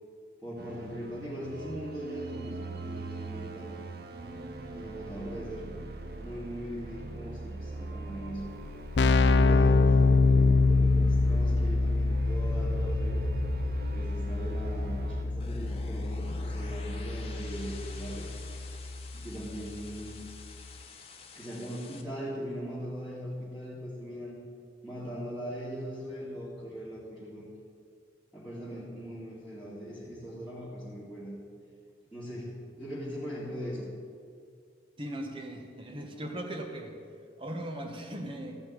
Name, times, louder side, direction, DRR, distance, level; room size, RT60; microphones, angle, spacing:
voice 1, 0.4-3.8 4.7-5.7 6.2-8.5 9.1-13.2 13.9-18.3 19.1-20.2 21.4-24.4 24.8-27.5 28.3-31.3 32.1-32.5 32.8-33.9, equal, 5° right, -11 dB, 2.4 m, -40 dB
sound 1, 0.6-15.2, right 2 dB, 55° right, 0.8 m, -40 dB
Keyboard (musical), 8.4-8.5 8.7-19.3, left 3 dB, 70° left, 0.4 m, -26 dB
sound 2, 15.4-22.0, left 3 dB, 30° left, 1.1 m, -48 dB
voice 2, 35.0-37.0 37.4-38.6, right 1 dB, 30° right, 3 dB, 1.2 m, -38 dB
14.5 x 5.5 x 8.8 m, 2.2 s
head